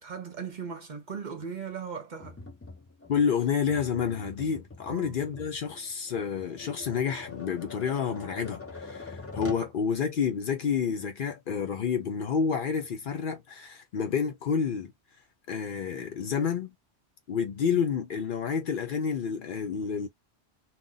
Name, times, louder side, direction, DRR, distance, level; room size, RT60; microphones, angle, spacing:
voice 1, 0.0-2.4 4.9-5.2 17.6-17.8, right 6 dB, 50° right, 0.7 m, -38 dB
Tap, 2.2-9.7, left 4 dB, 25° left, 0.3 m, -44 dB
voice 2, 3.1-14.9 15.5-16.7 17.3-20.1, left 6 dB, 60° left, 0.7 m, -29 dB
2.5 x 2.2 x 3.8 m
omnidirectional pair, 1.1 m